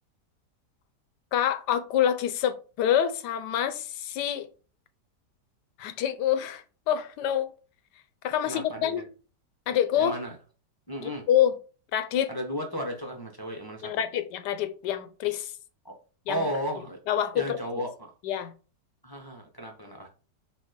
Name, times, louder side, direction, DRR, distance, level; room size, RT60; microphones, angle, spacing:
voice 1, 1.3-4.5 5.8-7.5 8.2-9.1 9.7-10.1 11.0-11.6 11.9-12.3 13.8-15.5 16.3-16.4 17.1-17.6 18.2-18.5, left 10 dB, 80° left, 1.3 m, -26 dB
voice 2, 8.4-9.0 10.0-10.3 10.9-11.3 12.3-14.0 15.8-16.0 16.3-17.0 17.3-18.1 19.0-20.1, equal, 15° left, 0.8 m, -34 dB
6.6 x 2.9 x 5.1 m
omnidirectional pair, 1.8 m